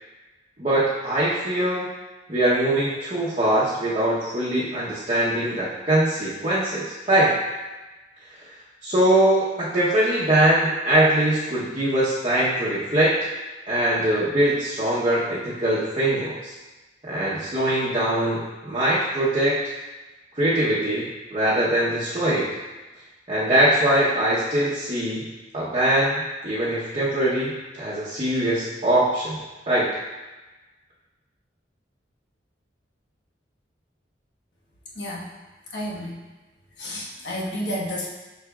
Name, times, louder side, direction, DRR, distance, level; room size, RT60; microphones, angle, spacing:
voice 1, 0.6-1.9 2.3-7.3 8.8-13.2 13.7-16.5 17.0-19.6 20.3-22.5 23.3-25.3 25.5-29.4 29.7-29.9, right 1 dB, 30° right, -9 dB, 1.0 m, -22 dB
voice 2, 35.7-36.1 36.8-38.1, equal, 65° left, -4 dB, 1.3 m, -30 dB
6.8 x 5.8 x 2.4 m, 1.2 s
head